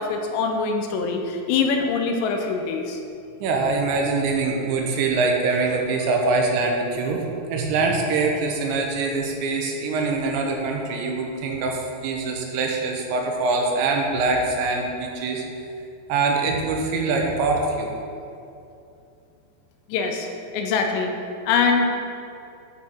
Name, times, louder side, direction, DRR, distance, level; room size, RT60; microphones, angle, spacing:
voice 1, 0.0-3.0 4.0-4.1 19.9-20.3 20.5-21.1 21.5-21.9, left 5 dB, 85° left, 3 dB, 2.9 m, -23 dB
voice 2, 3.4-15.4 16.1-17.9, right 3 dB, 85° right, 1 dB, 3.2 m, -24 dB
13.0 x 4.6 x 4.4 m, 2.6 s
omnidirectional pair, 5.2 m